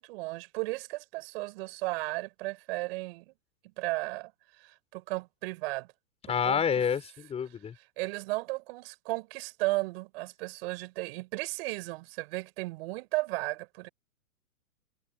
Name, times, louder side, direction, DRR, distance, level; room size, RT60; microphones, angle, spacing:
voice 1, 0.0-3.3 3.8-4.3 4.6-5.9 6.3-6.8 8.0-13.9, right 23 dB, 45° right, 6.7 m, -35 dB
voice 2, 6.2-7.7, left 7 dB, 15° left, 5.4 m, -28 dB
hypercardioid pair, 140°, 43 cm